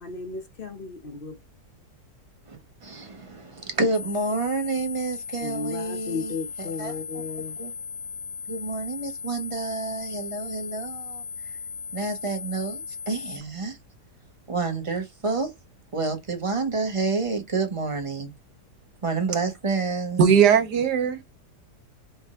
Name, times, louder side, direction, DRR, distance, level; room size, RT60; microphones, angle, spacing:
voice 1, 0.0-1.4 5.4-7.6, left 4 dB, 40° left, 0.9 m, -35 dB
voice 2, 2.5-7.0 7.6-7.7 8.5-11.2 11.9-13.8 14.5-15.5 15.9-18.3 19.0-20.2, right 3 dB, 20° right, 1.1 m, -29 dB
sound 1, 3.9-13.4, left 5 dB, 80° left, 1.4 m, -37 dB
voice 3, 20.2-21.2, right 7 dB, 75° right, 1.6 m, -18 dB
5.2 x 3.7 x 2.5 m
omnidirectional pair, 1.8 m